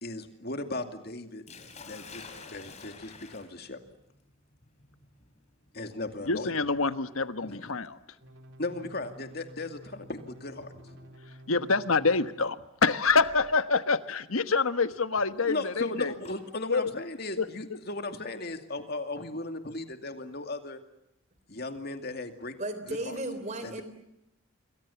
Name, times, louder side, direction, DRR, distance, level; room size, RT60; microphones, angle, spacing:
voice 1, 0.0-1.4 1.8-3.8 5.7-6.6 7.5-7.7 8.6-10.7 15.5-20.8 21.5-22.5 22.9-23.2 23.6-23.8, left 2 dB, 45° left, 7 dB, 2.4 m, -37 dB
Sink (filling or washing), 1.5-11.4 12.5-12.8 13.3-13.4 14.9-16.4, left 4 dB, 30° left, 3.6 m, -52 dB
voice 2, 6.3-8.0 11.5-16.1 16.7-16.9 17.4-17.5, left 4 dB, 80° left, 11 dB, 1.3 m, -26 dB
sound 1, 8.2-12.3 13.1-13.6, equal, 60° right, 3.7 m, -51 dB
voice 3, 22.6-23.8, right 2 dB, 35° right, 11 dB, 3.6 m, -34 dB
28.0 x 23.5 x 7.1 m, 0.85 s
head